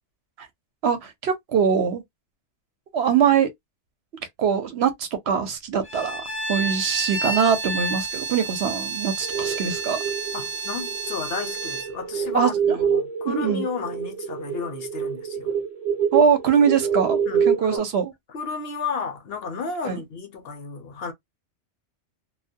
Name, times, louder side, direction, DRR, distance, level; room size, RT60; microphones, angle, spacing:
voice 1, 0.8-2.0 2.9-3.5 4.4-6.2 6.5-10.0 12.3-12.8 13.3-13.6 16.1-17.2 17.5-18.1 19.8-20.0, right 7 dB, 65° right, 0.8 m, -22 dB
Bowed string instrument, 5.8-11.9, right 3 dB, 15° left, 0.4 m, -30 dB
sound 1, 9.2-17.8, right 7 dB, 40° right, 0.7 m, -26 dB
voice 2, 10.3-15.5 17.3-17.8 18.3-21.1, left 5 dB, 60° left, 0.8 m, -32 dB
2.3 x 2.1 x 2.6 m
omnidirectional pair, 1.2 m